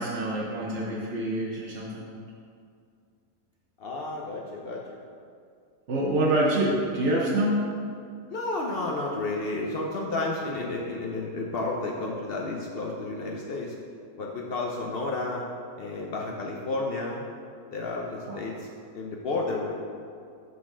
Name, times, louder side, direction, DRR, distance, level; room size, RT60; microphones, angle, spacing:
voice 1, 0.0-2.1 5.9-7.6 18.3-18.4, right 1 dB, 55° right, -3 dB, 0.9 m, -26 dB
voice 2, 3.8-5.0 8.3-13.7 14.2-15.4 15.8-17.2 17.7-18.7 18.9-19.8, left 2 dB, 85° left, -2 dB, 0.5 m, -31 dB
7.1 x 4.1 x 6.0 m, 2.3 s
omnidirectional pair, 1.9 m